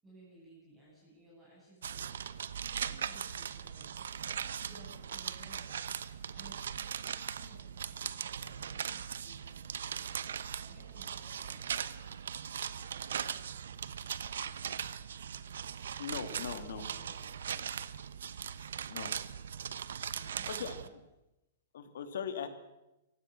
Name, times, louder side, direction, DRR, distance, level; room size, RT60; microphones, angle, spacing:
voice 1, 0.0-2.0 2.7-3.9 4.3-5.7 6.3-10.3 10.6-11.8 16.0-17.7 20.1-20.9, equal, 10° right, -6 dB, 7.6 m, -58 dB
sound 1, 1.8-20.9, right 8 dB, 90° right, 1.1 m, -39 dB
voice 2, 16.0-16.8 18.9-19.1 20.1-20.8 21.7-22.5, left 7 dB, 70° left, 8 dB, 2.8 m, -40 dB
28.5 x 16.0 x 6.3 m, 0.94 s
hypercardioid pair, 170°, 0 cm